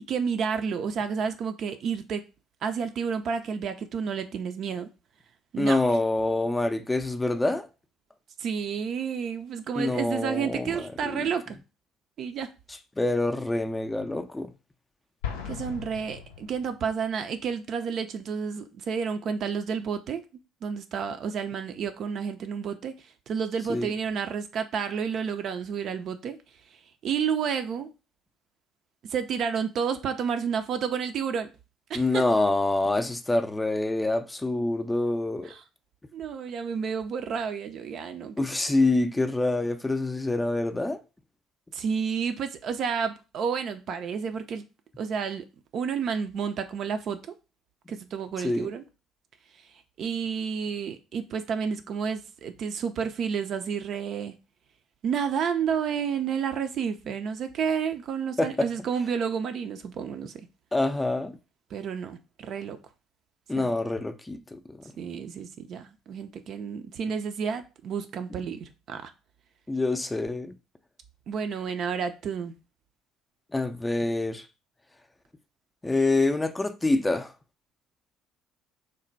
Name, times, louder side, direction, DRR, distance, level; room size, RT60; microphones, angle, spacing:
voice 1, 0.1-2.2 2.6-4.9 5.5-5.8 8.4-11.6 12.2-12.5 15.4-20.2 20.6-26.4 27.0-27.9 29.0-31.5 31.9-32.2 35.4-35.6 36.1-38.4 41.7-44.7 45.0-45.5 45.7-47.2 47.9-48.8 50.0-54.3 55.0-60.5 61.7-62.8 63.5-63.7 65.0-69.1 71.3-72.5, right 6 dB, 55° right, 0.4 m, -30 dB
voice 2, 5.6-7.7 9.8-11.3 13.0-14.5 23.7-23.9 31.9-35.5 38.4-41.0 48.4-48.7 58.4-58.7 60.7-61.4 63.5-64.8 69.7-70.6 73.5-74.5 75.8-77.3, left 2 dB, 15° left, 0.4 m, -26 dB
Explosion, 15.2-17.1, left 8 dB, 80° left, 0.4 m, -37 dB
3.2 x 2.1 x 3.9 m
hypercardioid pair, 55°, 0 cm